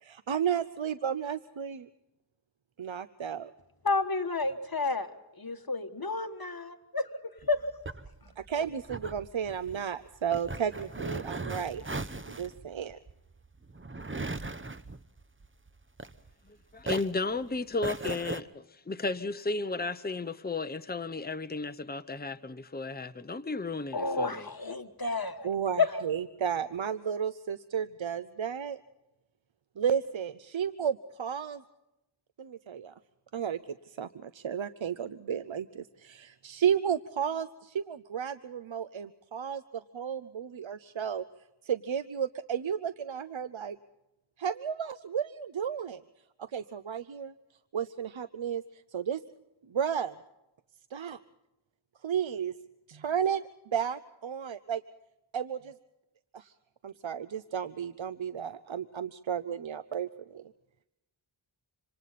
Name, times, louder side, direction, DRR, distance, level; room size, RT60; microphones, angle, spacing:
voice 1, 0.0-1.9 2.8-3.5 8.4-11.8 12.4-13.0 25.4-28.8 29.8-31.6 32.4-32.9 33.3-33.6 33.9-39.6 39.9-41.2 41.6-43.8 44.4-46.0 46.5-47.3 47.7-48.6 48.9-49.2 49.7-50.1 50.9-51.2 52.0-52.5 52.9-53.4 53.7-54.8 55.3-55.7 56.3-56.5 56.8-60.5, right 8 dB, 75° right, 0.7 m, -33 dB
voice 2, 3.8-5.1 5.4-7.0 7.5-7.6 8.6-8.7 23.9-25.5 25.8-25.9, left 4 dB, 50° left, 1.5 m, -30 dB
sound 1, 7.4-16.5 16.8-18.4, right 2 dB, 25° right, 0.9 m, -38 dB
voice 3, 16.5-24.5, left 3 dB, 20° left, 0.8 m, -34 dB
26.5 x 26.0 x 4.2 m
wide cardioid pair, 40°, 47 cm